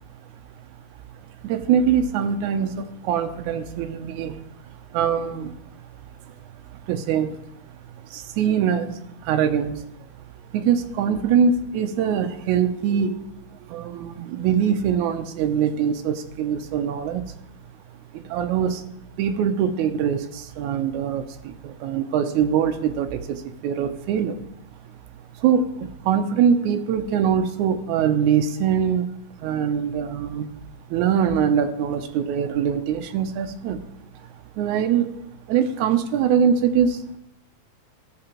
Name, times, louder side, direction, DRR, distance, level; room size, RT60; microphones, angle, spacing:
voice 1, 1.4-4.4 4.9-5.5 6.9-7.3 8.1-9.9 10.5-13.2 13.7-17.2 18.3-18.8 19.2-24.4 25.4-29.1 29.4-30.5 30.9-33.8 34.6-35.1 35.5-37.2, right 8 dB, 75° right, 7 dB, 1.9 m, -23 dB
12.5 x 7.6 x 3.0 m, 0.80 s
omnidirectional pair, 3.8 m